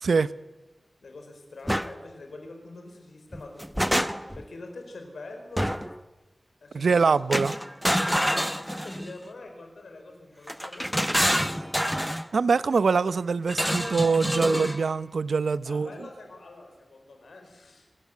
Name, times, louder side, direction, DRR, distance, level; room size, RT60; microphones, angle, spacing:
voice 1, 1.0-3.9 4.3-5.7 6.6-7.2 8.5-12.1 15.6-17.9, left 2 dB, 90° left, 4.6 m, -45 dB
sound 1, 1.7-1.9 3.3-4.4 5.6-6.0 7.3-9.2 10.5-12.3 13.5-14.8, equal, ahead, 0.9 m, -27 dB
voice 2, 6.7-7.5 12.3-16.1, right 4 dB, 85° right, 0.6 m, -24 dB
28.0 x 12.5 x 9.5 m
wide cardioid pair, 60°, 0 cm